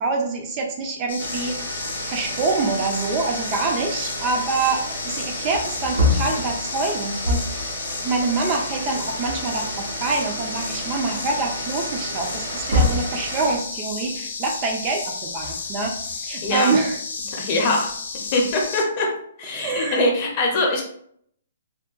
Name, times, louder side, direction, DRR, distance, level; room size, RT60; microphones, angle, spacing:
voice 1, 0.0-1.6 2.0-7.7 8.0-17.0 19.5-20.0, right 3 dB, 25° right, 1 dB, 0.3 m, -26 dB
sound 1, 1.1-18.8, left 4 dB, 70° left, 0.5 m, -32 dB
sound 2, 1.2-13.6, right 2 dB, 60° right, 0.6 m, -35 dB
Wood, 5.5-7.7 8.8-8.9 9.2-10.4 10.9-11.0 12.3-13.2 15.2-16.1, left 2 dB, 90° right, 1.1 m, -25 dB
voice 2, 16.4-16.7 17.3-17.9 18.3-19.1 19.4-20.8, left 2 dB, 30° left, 1 dB, 0.7 m, -22 dB
3.6 x 2.2 x 2.4 m, 0.65 s
hypercardioid pair, 165°, 0 cm